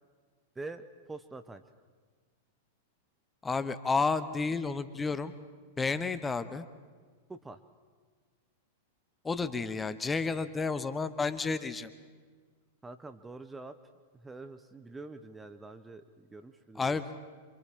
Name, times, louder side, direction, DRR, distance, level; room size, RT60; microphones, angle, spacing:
voice 1, 0.6-1.6 7.3-7.6 12.8-13.8 14.1-17.0, right 3 dB, 10° right, 9 dB, 0.9 m, -45 dB
voice 2, 3.4-5.3 5.8-6.6 9.2-11.9 16.8-17.1, left 4 dB, 15° left, 12 dB, 1.0 m, -31 dB
27.0 x 26.5 x 3.7 m, 1.5 s
figure-of-eight pair, 100°, 0 cm